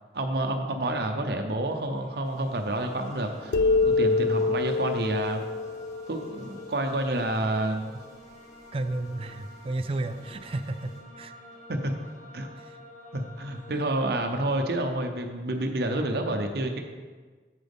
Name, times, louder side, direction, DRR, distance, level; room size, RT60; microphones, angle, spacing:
voice 1, 0.1-5.4 6.1-7.9 11.7-11.9 12.3-12.5 13.1-16.8, right 1 dB, 65° right, 4 dB, 0.7 m, -29 dB
sound 1, 1.6-14.5, left 1 dB, 45° left, 1.6 m, -49 dB
sound 2, 2.2-11.0, equal, 20° left, 1.3 m, -52 dB
sound 3, 3.5-7.0, left 3 dB, 85° left, 0.4 m, -26 dB
voice 2, 8.7-11.3, right 2 dB, 30° right, 10 dB, 0.3 m, -32 dB
7.8 x 7.3 x 3.6 m, 1.4 s
head